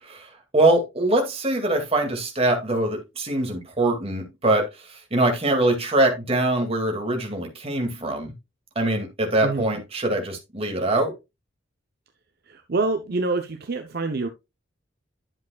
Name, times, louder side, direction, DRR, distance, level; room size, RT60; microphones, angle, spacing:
voice 1, 0.0-8.3 8.8-11.1, right 2 dB, 30° right, 2.2 m, -23 dB
voice 2, 9.4-9.8 12.5-14.3, right 3 dB, 55° right, 0.8 m, -26 dB
11.0 x 7.4 x 2.3 m
head